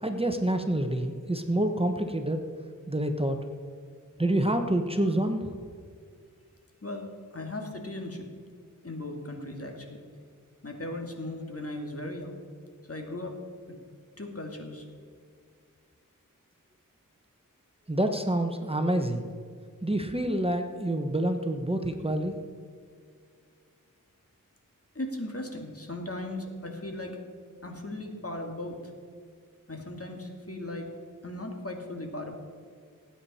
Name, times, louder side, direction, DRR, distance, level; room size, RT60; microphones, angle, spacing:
voice 1, 0.0-2.4 2.9-3.4 4.2-5.5 17.9-19.3 19.8-22.4, right 1 dB, 15° right, 5 dB, 1.1 m, -27 dB
voice 2, 6.8-8.3 8.8-10.0 10.6-12.4 12.9-13.4 14.2-14.8 25.0-27.2 27.6-28.8 29.7-30.9 31.2-32.4, left 1 dB, 45° left, 2 dB, 2.3 m, -37 dB
18.5 x 9.0 x 4.3 m, 2.1 s
wide cardioid pair, 45°, 33 cm